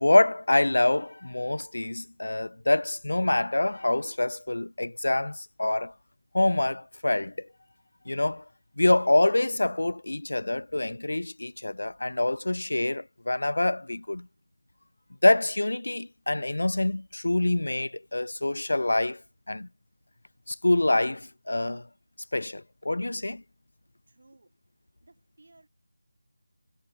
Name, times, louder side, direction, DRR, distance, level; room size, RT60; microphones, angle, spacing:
voice 1, 0.0-5.9 6.3-7.5 8.1-8.4 8.8-14.3 15.2-19.2 19.5-19.7 20.5-21.8 22.3-23.4, left 2 dB, 85° left, 0.3 m, -25 dB
voice 2, 24.1-24.5 25.0-25.7, right 2 dB, 60° right, 8.0 m, -58 dB
figure-of-eight pair, 175°, 0 cm